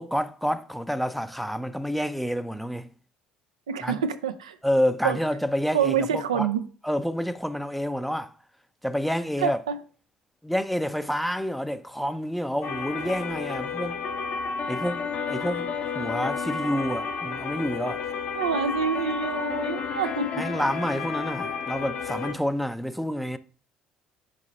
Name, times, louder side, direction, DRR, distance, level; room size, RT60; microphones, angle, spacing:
voice 1, 0.0-2.9 3.8-4.0 4.6-6.5 6.8-8.3 8.8-9.6 10.4-14.0 14.7-18.0 20.4-23.4, equal, ahead, 0.5 m, -28 dB
voice 2, 3.7-4.6 5.0-5.2 5.7-6.6 9.4-9.8 18.3-20.4, right 7 dB, 85° right, 0.4 m, -27 dB
sound 1, 12.6-22.3, left 5 dB, 55° left, 0.8 m, -31 dB
5.3 x 4.8 x 4.0 m
hypercardioid pair, 60°, 3 cm